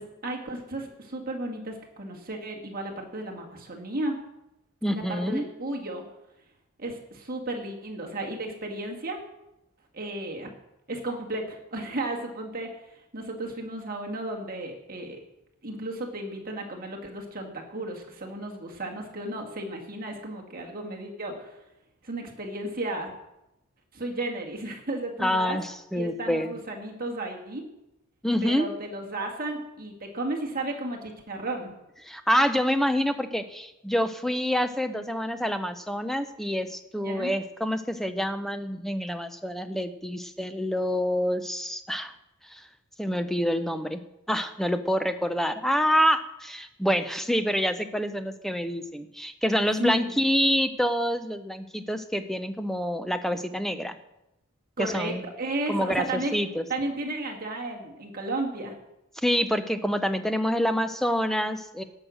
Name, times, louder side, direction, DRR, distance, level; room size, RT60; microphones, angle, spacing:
voice 1, 0.0-4.2 4.9-6.0 6.8-9.2 9.9-10.5 10.9-15.2 15.6-21.6 22.0-23.1 23.9-25.6 25.9-27.6 28.4-31.7 37.0-37.3 49.8-50.2 54.8-56.4 56.7-58.8, right 2 dB, 40° right, 0 dB, 1.9 m, -34 dB
voice 2, 4.8-5.4 25.2-26.5 28.2-28.7 32.1-42.1 42.4-42.7 43.0-44.0 44.3-53.9 54.8-55.2 55.7-56.0 56.3-56.6 59.2-61.8, equal, ahead, 9 dB, 0.6 m, -27 dB
17.5 x 6.4 x 6.3 m, 0.90 s
head